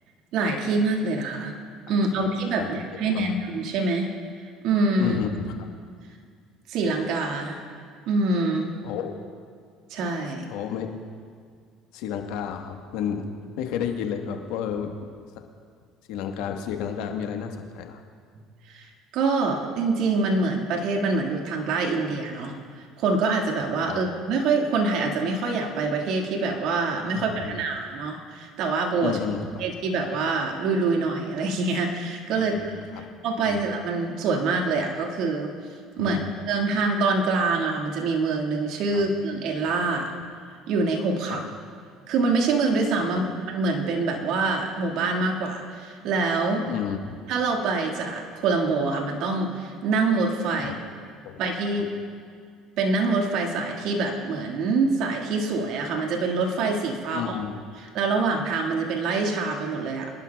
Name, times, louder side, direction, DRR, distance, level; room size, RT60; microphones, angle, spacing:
voice 1, 0.3-1.5 1.9-4.1 4.6-5.2 6.7-7.6 8.1-8.7 9.9-10.4 18.7-22.5 23.0-29.2 29.6-35.5 36.0-36.2 36.5-40.1 40.7-41.4 42.1-46.7 47.3-50.8 51.4-51.9 52.8-57.4 57.8-60.1, right 3 dB, 70° right, 1 dB, 1.9 m, -25 dB
voice 2, 2.9-3.3 5.0-5.5 8.8-9.2 10.5-10.9 11.9-13.3 13.6-15.1 16.1-18.0 23.8-24.0 27.1-27.6 29.0-29.6 32.3-33.0 33.4-33.6 36.0-36.3 38.9-39.0 41.3-41.4 43.1-43.3 46.7-47.2 50.6-50.8 51.2-51.4 57.1-57.6, left 8 dB, 75° left, 4 dB, 1.3 m, -31 dB
24.5 x 11.5 x 2.3 m, 2.1 s
supercardioid pair, 80°, 0 cm